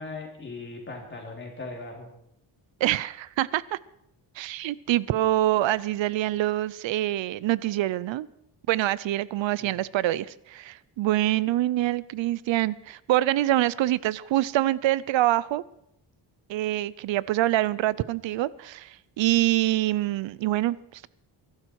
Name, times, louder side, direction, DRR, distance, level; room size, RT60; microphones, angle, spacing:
voice 1, 0.0-2.1 9.6-9.8, left 3 dB, 25° left, 1 dB, 3.5 m, -39 dB
voice 2, 2.8-3.8 4.4-8.3 8.7-15.6 16.5-21.1, right 15 dB, 80° right, 20 dB, 0.6 m, -25 dB
22.5 x 12.5 x 4.7 m, 0.77 s
wide cardioid pair, 170°, 44 cm